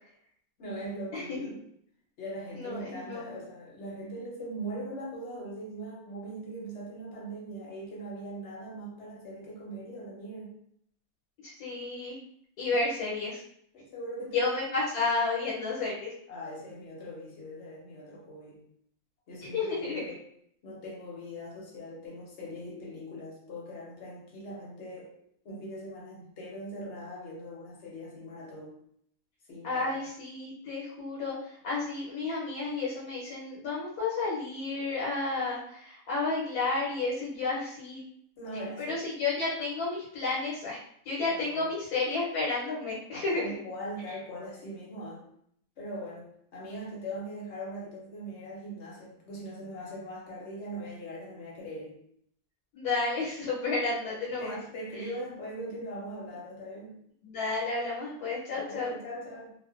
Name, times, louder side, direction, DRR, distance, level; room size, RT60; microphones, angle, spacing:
voice 1, 0.6-1.6 2.2-10.6 13.7-14.4 16.3-18.6 19.3-20.3 20.6-25.1 25.4-28.8 29.5-30.0 38.4-39.0 41.3-41.7 43.3-45.2 45.8-52.0 54.1-57.0 58.5-59.5, right 1 dB, 60° left, -4 dB, 0.9 m, -41 dB
voice 2, 1.1-1.5 2.5-3.4 11.4-12.2 12.6-13.4 14.3-16.1 19.5-20.0 29.6-38.0 38.8-40.8 41.0-43.5 52.7-54.6 54.9-55.0 57.2-58.9, left 3 dB, 80° left, -6 dB, 1.2 m, -31 dB
2.5 x 2.1 x 2.3 m, 0.68 s
omnidirectional pair, 1.6 m